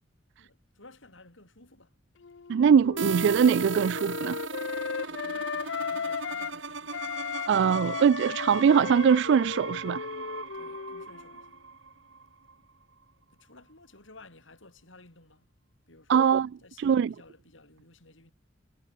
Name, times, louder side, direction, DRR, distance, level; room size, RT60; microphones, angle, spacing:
voice 1, 0.4-2.0 5.1-7.1 10.5-11.6 13.3-15.5 15.9-18.3, left 2 dB, 90° left, 7.7 m, -55 dB
Wind instrument woodwind instrument, 2.2-6.6 6.9-11.4, left 6 dB, 70° left, 0.6 m, -36 dB
voice 2, 2.5-4.4 7.5-10.1 16.1-16.5 16.8-17.1, right 7 dB, 65° right, 0.3 m, -22 dB
sound 1, 3.0-12.5, right 4 dB, 80° right, 2.7 m, -38 dB
head